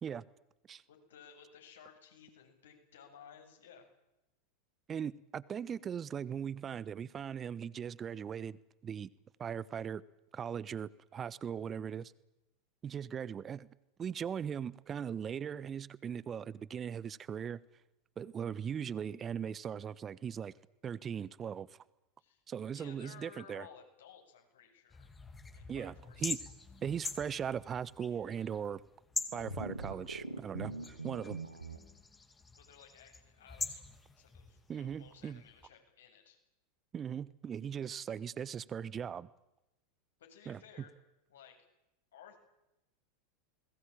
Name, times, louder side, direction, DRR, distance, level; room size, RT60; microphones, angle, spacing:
voice 1, 0.9-3.9 22.2-22.4 22.7-25.2 25.5-26.4 32.6-33.8 34.2-36.4 40.2-40.9 41.3-41.6 42.1-42.4, left 8 dB, 65° left, 3 dB, 7.7 m, -57 dB
voice 2, 4.9-9.1 9.4-10.0 10.3-12.1 12.8-13.7 14.0-17.6 18.2-20.5 20.8-21.8 22.5-23.7 25.7-26.4 26.8-28.8 29.3-31.4 34.7-35.4 36.9-39.3 40.5-40.6, right 8 dB, 25° right, 20 dB, 1.1 m, -39 dB
sound 1, 24.9-35.7, left 4 dB, 15° left, 3.2 m, -45 dB
sound 2, 29.3-31.8, right 2 dB, 90° right, 2.7 m, -42 dB
30.0 x 21.0 x 9.0 m, 0.93 s
figure-of-eight pair, 85°, 0 cm